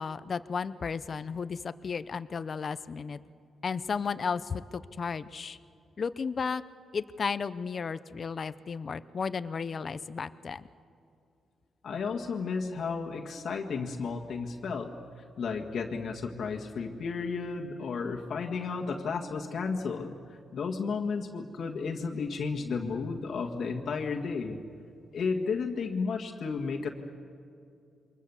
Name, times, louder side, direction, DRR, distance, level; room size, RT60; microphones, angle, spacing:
voice 1, 0.0-3.2 3.6-5.6 6.0-6.6 6.9-10.7, left 5 dB, 35° left, 14 dB, 0.7 m, -34 dB
voice 2, 11.8-14.9 15.4-24.6 25.1-26.9, left 5 dB, 50° left, 1 dB, 1.8 m, -33 dB
28.5 x 24.0 x 7.2 m, 2.5 s
wide cardioid pair, 165°, 0 cm